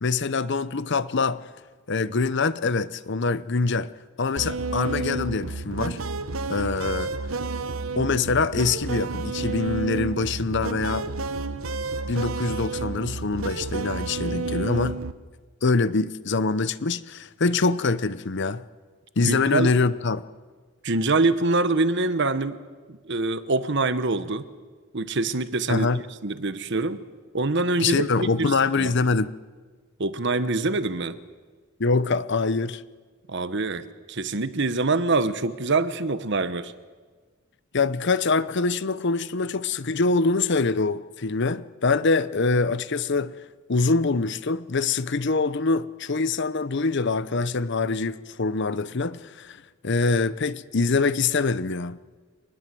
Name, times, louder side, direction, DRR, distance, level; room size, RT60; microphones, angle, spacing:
voice 1, 0.0-1.4 1.9-3.9 4.2-6.0 6.5-7.1 8.0-11.1 12.1-15.0 15.6-18.6 19.2-20.2 25.7-26.0 27.8-29.3 31.8-32.8 37.7-43.3 43.7-52.0, left 4 dB, 55° left, 0.8 m, -24 dB
sound 1, 4.4-15.1, right 3 dB, 85° right, 1.0 m, -30 dB
voice 2, 19.2-19.7 20.8-22.6 22.9-24.5 24.9-25.9 26.2-27.0 27.3-28.1 28.4-28.9 30.0-31.2 33.3-36.7, right 3 dB, 60° right, 1.2 m, -25 dB
25.0 x 20.0 x 7.7 m
head